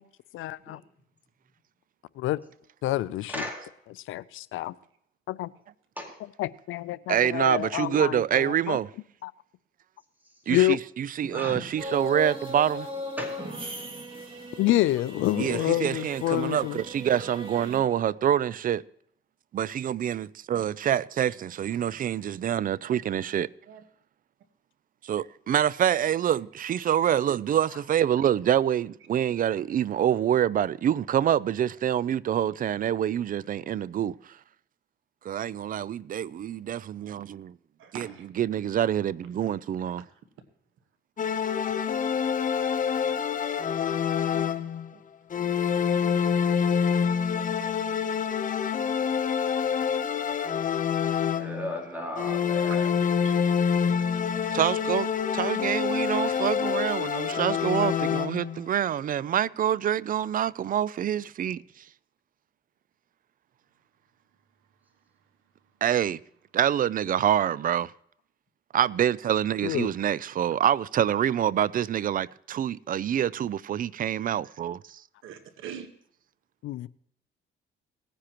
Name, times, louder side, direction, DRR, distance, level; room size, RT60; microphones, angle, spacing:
voice 1, 0.3-0.8 2.2-2.4 2.8-3.4 4.1-4.7 5.3-5.5 6.4-8.8 9.2-9.3 10.5-10.8 14.6-16.8 69.6-69.9 76.6-76.9, left 15 dB, 80° left, 0.5 m, -27 dB
voice 2, 3.3-3.6 6.0-6.1 11.3-11.6 13.2-13.3 51.3-52.9, left 1 dB, 10° right, 4.1 m, -35 dB
voice 3, 7.1-8.9 10.5-12.9 15.4-18.8 19.5-23.5 25.0-34.1 35.2-37.5 37.9-38.1 38.4-40.0 54.5-55.1 55.3-61.6 65.8-66.2 66.5-67.9 68.7-75.0, right 10 dB, 45° right, 0.4 m, -26 dB
sound 1, 11.8-17.8, equal, 25° right, 2.5 m, -37 dB
voice 4, 17.4-17.9 21.3-21.4 23.6-23.8 37.8-38.3 44.3-45.0 52.6-52.8 53.2-53.4 65.6-65.7 75.2-75.9, right 8 dB, 85° right, 1.4 m, -45 dB
sound 2, 41.2-44.9 45.3-51.8 52.2-58.6, left 7 dB, 40° left, 0.8 m, -26 dB
18.5 x 9.9 x 3.0 m
cardioid pair, 90°, 20 cm